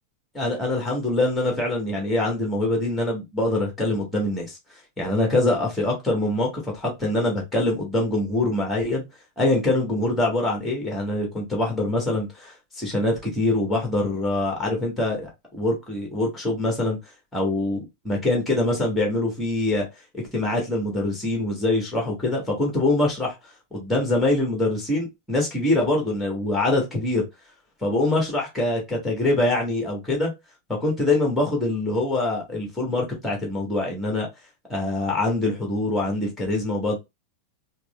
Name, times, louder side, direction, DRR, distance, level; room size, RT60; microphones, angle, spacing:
voice 1, 0.3-4.6 5.0-9.0 9.4-17.0 17.3-19.8 20.1-23.4 23.7-27.2 27.8-30.3 30.7-34.3 34.7-37.0, left 2 dB, 5° left, 1.6 m, -24 dB
4.6 x 2.1 x 2.4 m
figure-of-eight pair, 90°, 0 cm